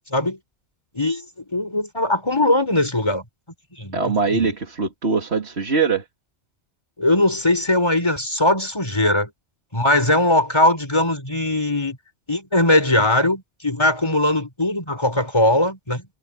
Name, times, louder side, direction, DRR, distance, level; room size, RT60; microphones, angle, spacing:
voice 1, 0.9-1.2 1.5-3.2 3.8-4.0 4.3-4.5 7.0-9.3 9.7-12.0 12.3-16.1, left 1 dB, 25° left, 5.1 m, -20 dB
voice 2, 3.9-6.0, right 4 dB, 70° right, 2.5 m, -22 dB
omnidirectional pair, 1.1 m